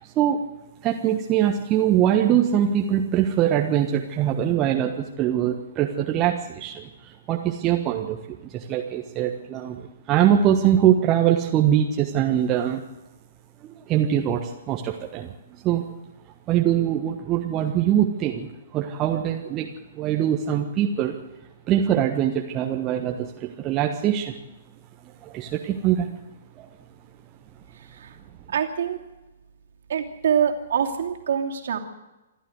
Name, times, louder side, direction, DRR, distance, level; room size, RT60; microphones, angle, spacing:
voice 1, 0.0-0.4 0.8-12.8 13.6-15.9 16.5-19.7 19.9-21.2 21.7-24.4 25.2-26.1 26.6-26.7, right 10 dB, 25° right, 2 dB, 1.4 m, -23 dB
voice 2, 27.7-28.2 28.5-29.0 29.9-31.8, right 8 dB, 50° right, 2 dB, 2.8 m, -25 dB
27.5 x 12.0 x 8.1 m, 1.1 s
figure-of-eight pair, 120°, 0 cm